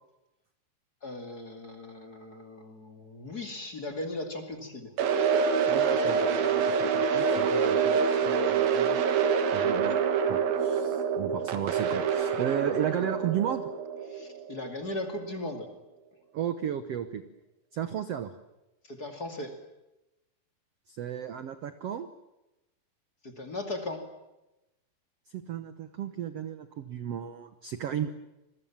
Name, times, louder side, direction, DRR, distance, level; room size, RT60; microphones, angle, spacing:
voice 1, 1.0-4.9 14.1-15.7 18.9-19.5 23.2-24.0, left 2 dB, 30° left, 6 dB, 2.5 m, -37 dB
sound 1, 5.0-15.0, right 6 dB, 85° right, 3.6 m, -26 dB
voice 2, 5.7-9.1 9.5-10.0 10.3-13.7 16.3-17.2 17.7-18.3 20.9-22.1 25.3-28.1, right 9 dB, 65° right, 11 dB, 1.6 m, -34 dB
27.5 x 22.5 x 7.3 m, 0.96 s
omnidirectional pair, 4.1 m